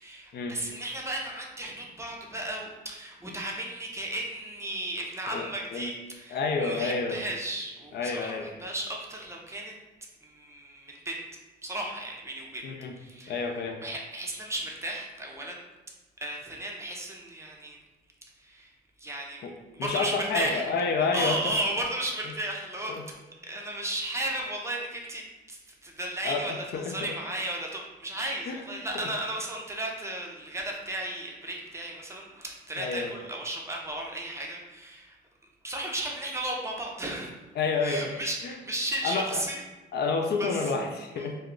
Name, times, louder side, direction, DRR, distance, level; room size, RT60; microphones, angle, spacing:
voice 1, 0.0-9.7 10.2-11.2 11.6-12.6 13.0-15.6 16.2-17.8 18.4-18.7 19.0-19.4 19.7-20.7 21.0-23.0 23.5-25.2 25.5-35.2 35.6-37.3 37.8-39.6 40.4-40.7 41.2-41.3, right 1 dB, 15° right, -1 dB, 0.5 m, -34 dB
voice 2, 5.3-5.9 6.3-7.2 7.9-8.5 12.6-12.9 13.3-13.8 19.4-19.5 19.8-21.5 22.9-23.0 26.2-27.2 28.5-28.6 28.9-29.1 32.8-33.1 37.6-38.1 38.4-38.6 39.0-39.3 39.9-41.4, left 4 dB, 55° left, 3 dB, 0.4 m, -29 dB
2.2 x 2.1 x 3.6 m, 1.1 s
cardioid pair, 90°, 20 cm